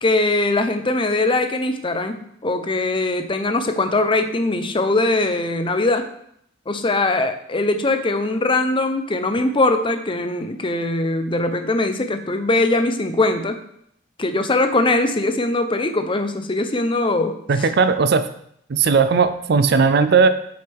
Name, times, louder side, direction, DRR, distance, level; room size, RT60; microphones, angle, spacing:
voice 1, 0.0-6.1 6.7-13.6 14.2-17.7, left 2 dB, 30° left, 8 dB, 0.7 m, -21 dB
voice 2, 17.5-18.2 18.7-20.3, right 5 dB, 60° right, 12 dB, 0.5 m, -16 dB
8.9 x 6.6 x 3.5 m, 0.71 s
head